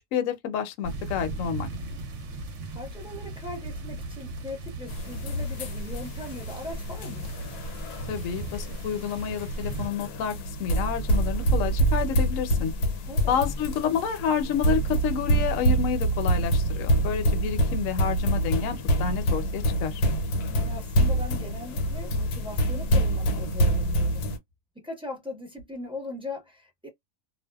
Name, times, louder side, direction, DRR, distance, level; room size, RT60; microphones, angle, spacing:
voice 1, 0.1-1.7 8.1-10.3 10.6-12.7 13.3-20.0, left 8 dB, 65° left, 0.9 m, -29 dB
sound 1, 0.8-9.9, right 2 dB, 60° right, 0.9 m, -38 dB
voice 2, 2.7-7.4 13.1-13.4 20.5-24.3 24.7-26.9, left 2 dB, 5° right, 0.5 m, -39 dB
sound 2, 4.9-24.4, right 1 dB, 80° left, 1.2 m, -26 dB
2.6 x 2.1 x 2.3 m
omnidirectional pair, 1.7 m